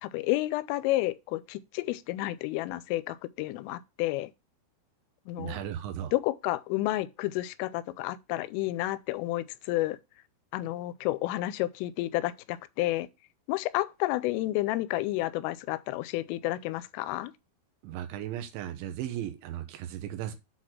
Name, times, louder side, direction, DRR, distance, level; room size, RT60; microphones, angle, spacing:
voice 1, 0.0-4.3 5.3-5.6 6.1-10.0 10.5-13.1 13.5-17.3, left 17 dB, 90° left, 3.2 m, -30 dB
voice 2, 5.4-6.1 17.8-20.4, right 11 dB, 75° right, 3.2 m, -36 dB
7.9 x 4.2 x 5.9 m
omnidirectional pair, 5.7 m